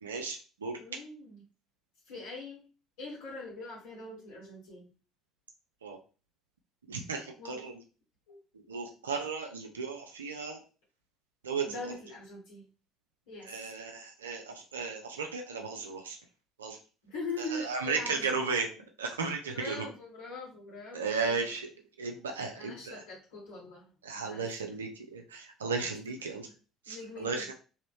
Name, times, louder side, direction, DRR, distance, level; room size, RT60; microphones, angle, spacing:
voice 1, 0.0-0.7 5.8-6.0 6.9-7.7 8.7-10.6 11.4-11.8 13.5-16.2 16.6-16.8 17.5-18.7 19.0-19.9 20.9-21.7 22.0-23.0 24.0-26.5 26.9-27.5, right 4 dB, 85° right, 3 dB, 0.4 m, -35 dB
voice 2, 0.8-1.4 2.1-2.6 3.0-4.9 7.4-7.6 8.3-8.4 11.6-12.6 13.3-13.6 17.0-18.3 19.5-21.4 22.5-23.9 24.2-24.7 25.9-26.0 26.9-27.5, left 2 dB, 70° left, -6 dB, 1.9 m, -42 dB
3.1 x 2.9 x 3.1 m, 0.35 s
figure-of-eight pair, 55°, 0 cm